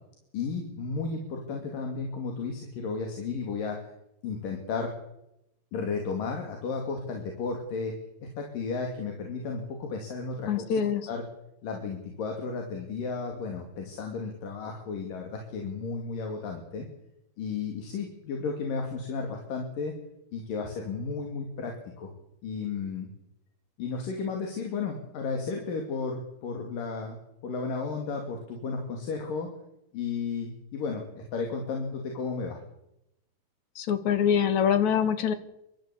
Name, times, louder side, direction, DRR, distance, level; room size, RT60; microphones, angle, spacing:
voice 1, 0.3-3.9 4.2-4.9 5.7-7.9 8.2-10.7 11.1-11.2 11.6-16.9 17.4-19.9 20.3-22.1 22.4-23.1 23.8-27.2 27.4-29.5 29.9-32.6, left 4 dB, 80° left, 2 dB, 4.3 m, -33 dB
voice 2, 10.5-11.0 33.8-35.3, left 8 dB, 65° left, 11 dB, 2.8 m, -24 dB
30.0 x 12.5 x 8.4 m, 0.85 s
omnidirectional pair, 3.8 m